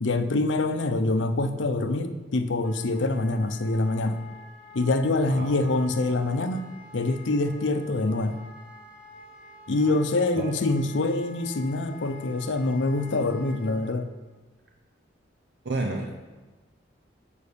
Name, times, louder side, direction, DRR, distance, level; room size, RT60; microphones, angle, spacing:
voice 1, 0.0-4.2 4.7-6.7 6.9-8.4 9.7-14.1, left 2 dB, 80° left, 8 dB, 0.6 m, -25 dB
Wind instrument woodwind instrument, 2.6-13.9, left 2 dB, 5° right, 1.2 m, -47 dB
voice 2, 15.6-16.1, right 2 dB, 60° right, 1 dB, 0.7 m, -30 dB
6.7 x 5.0 x 7.0 m, 1.3 s
head